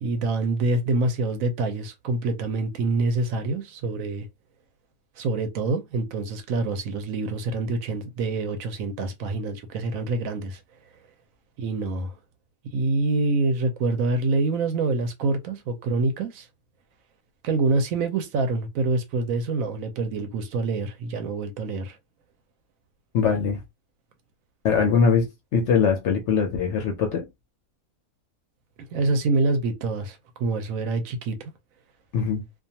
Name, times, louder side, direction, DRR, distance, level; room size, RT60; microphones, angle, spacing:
voice 1, 0.0-4.3 5.2-10.6 11.6-12.1 12.7-16.5 17.4-22.0 28.9-31.5, right 3 dB, 70° right, 0.9 m, -26 dB
voice 2, 23.1-23.6 24.6-25.3 25.5-27.3 32.1-32.4, left 6 dB, 65° left, 0.7 m, -21 dB
2.5 x 2.3 x 2.7 m
omnidirectional pair, 1.6 m